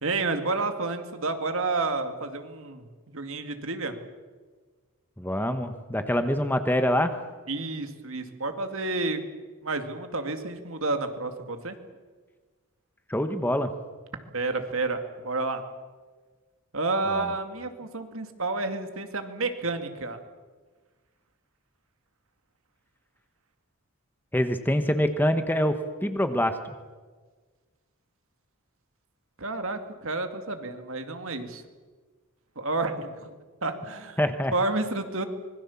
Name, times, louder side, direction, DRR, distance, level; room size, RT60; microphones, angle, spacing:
voice 1, 0.0-2.8 3.1-3.9 7.5-9.2 9.6-11.8 14.3-15.6 16.7-20.2 29.4-31.6 32.6-33.3 33.6-34.2 34.5-35.2, right 3 dB, 65° right, 7 dB, 2.3 m, -30 dB
voice 2, 5.2-7.1 13.1-13.7 17.1-17.3 24.3-26.7 34.2-34.5, equal, 10° left, 8 dB, 1.1 m, -25 dB
25.5 x 21.5 x 7.2 m, 1.4 s
head